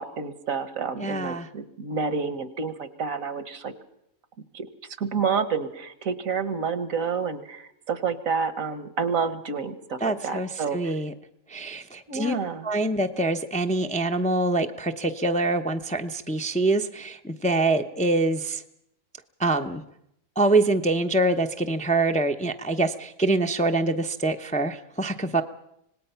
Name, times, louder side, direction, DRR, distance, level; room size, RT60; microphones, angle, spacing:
voice 1, 0.0-3.7 4.5-4.7 5.0-10.9 12.1-12.7, right 5 dB, 75° right, 12 dB, 1.7 m, -29 dB
voice 2, 1.0-1.5 10.0-11.1 11.5-12.3 12.6-18.6 19.4-19.8 20.4-25.4, right 2 dB, 5° left, 5 dB, 0.6 m, -25 dB
26.0 x 19.0 x 5.7 m, 0.78 s
omnidirectional pair, 1.4 m